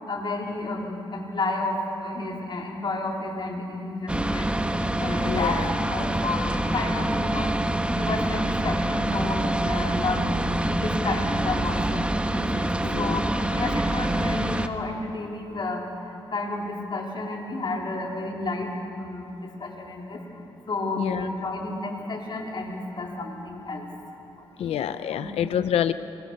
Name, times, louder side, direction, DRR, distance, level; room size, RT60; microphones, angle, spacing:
voice 1, 0.1-4.5 5.0-7.5 7.8-10.3 10.7-12.0 12.3-12.7 13.0-15.8 16.3-18.7 19.0-19.3 19.6-20.2 20.7-23.9 24.6-24.7 25.1-25.5, left 2 dB, 50° left, -1 dB, 4.3 m, -31 dB
sound 1, 4.1-14.7, right 1 dB, 10° right, 1.2 m, -26 dB
voice 2, 5.2-5.7 12.8-13.2 21.0-21.3 24.6-25.9, left 10 dB, 85° left, 12 dB, 0.6 m, -27 dB
26.0 x 21.5 x 6.5 m, 3.0 s
cardioid pair, 65°, 10 cm